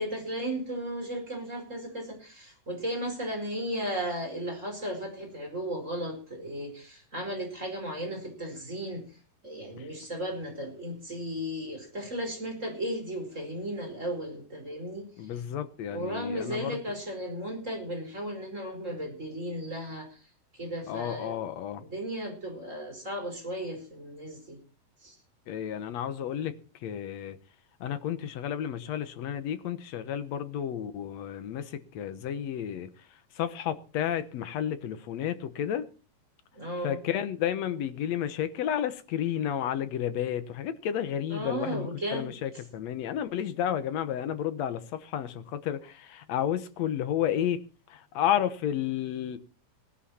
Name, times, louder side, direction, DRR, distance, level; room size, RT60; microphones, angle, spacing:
voice 1, 0.0-9.1 9.4-15.1 15.9-20.2 20.5-21.4 21.8-24.6 25.0-25.2 36.5-37.1 41.3-42.3, equal, 20° right, 5.0 m, -35 dB
voice 2, 15.2-16.8 20.9-21.8 25.5-26.5 26.8-27.4 27.8-33.1 33.3-35.9 36.8-47.6 47.9-49.4, left 10 dB, 65° left, 1.9 m, -31 dB
19.0 x 11.5 x 4.3 m
omnidirectional pair, 4.0 m